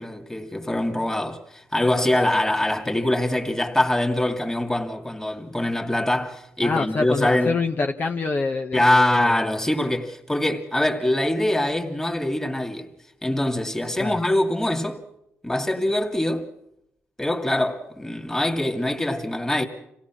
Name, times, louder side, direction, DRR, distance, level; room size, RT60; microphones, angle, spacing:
voice 1, 0.0-7.6 8.7-12.9 13.2-15.0 15.4-16.5 17.2-19.6, left 1 dB, 10° left, 2.6 m, -23 dB
voice 2, 6.6-9.3 14.0-14.2, left 4 dB, 40° left, 1.3 m, -26 dB
27.0 x 17.0 x 6.2 m
cardioid pair, 95°, 5 cm